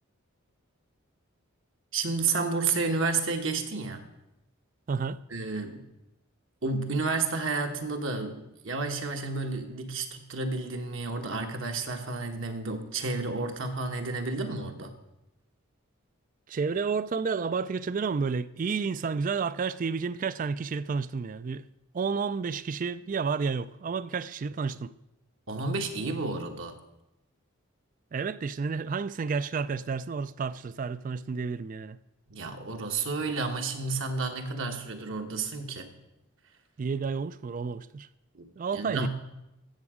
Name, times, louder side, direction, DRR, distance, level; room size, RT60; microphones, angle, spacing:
voice 1, 1.9-4.1 5.3-5.9 6.6-14.9 25.5-26.7 32.3-35.9 38.3-38.5 38.7-39.1, right 3 dB, 60° right, 1.2 m, -31 dB
voice 2, 4.9-5.2 16.5-21.7 21.9-24.9 28.1-32.0 36.8-38.1 38.6-39.1, right 5 dB, 35° right, 0.3 m, -31 dB
15.5 x 7.1 x 4.9 m
head